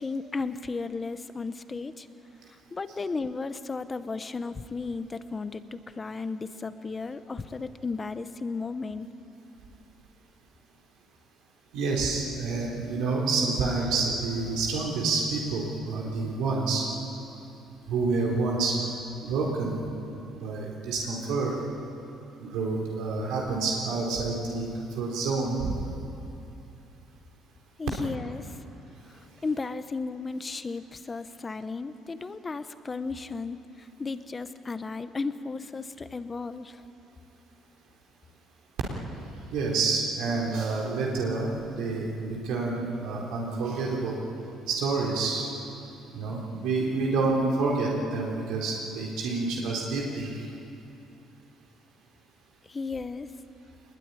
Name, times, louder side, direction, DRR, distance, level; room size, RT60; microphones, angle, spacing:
voice 1, 0.0-2.1 2.7-9.1 27.8-28.6 29.1-36.8 52.7-53.3, left 4 dB, 20° left, 12 dB, 0.9 m, -34 dB
voice 2, 11.7-16.8 17.9-18.8 19.2-19.8 20.3-21.5 22.4-25.8 39.5-44.2 44.7-45.5 46.1-50.5, right 3 dB, 80° right, -2 dB, 4.1 m, -28 dB
24.0 x 21.0 x 9.8 m, 2.8 s
cardioid pair, 145°, 0 cm